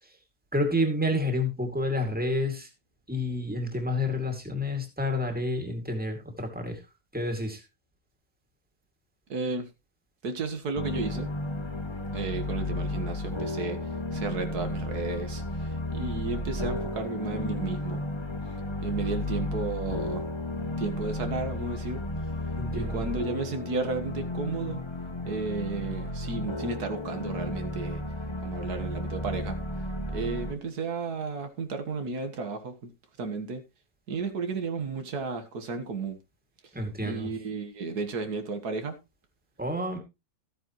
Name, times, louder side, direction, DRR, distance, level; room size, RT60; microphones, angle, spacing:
voice 1, 0.5-2.7 3.1-6.8 7.1-7.6 22.6-23.0 36.7-37.3 39.6-40.0, left 1 dB, 5° right, 2.4 m, -29 dB
voice 2, 9.3-9.7 10.2-11.3 12.1-13.8 14.1-18.0 18.8-20.2 20.8-22.0 22.7-24.8 25.3-28.0 28.4-29.6 30.1-32.9 33.2-33.6 34.1-36.2 37.0-39.0, right 4 dB, 85° right, 2.0 m, -33 dB
sound 1, 10.7-30.5, left 1 dB, 25° left, 0.8 m, -33 dB
14.0 x 9.1 x 3.1 m
omnidirectional pair, 1.6 m